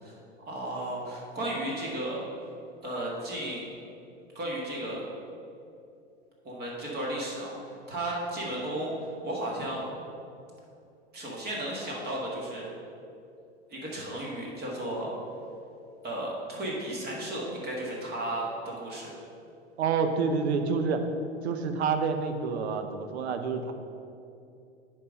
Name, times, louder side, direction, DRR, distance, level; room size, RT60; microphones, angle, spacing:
voice 1, 0.0-2.2 2.8-3.6 4.4-5.1 6.4-8.9 9.2-9.9 11.1-12.7 13.7-15.1 16.0-19.1, right 1 dB, 30° right, -3 dB, 1.8 m, -34 dB
voice 2, 19.8-21.0 21.4-23.7, right 5 dB, 70° right, 7 dB, 0.8 m, -28 dB
9.4 x 3.7 x 5.3 m, 2.6 s
hypercardioid pair, 90°, 34 cm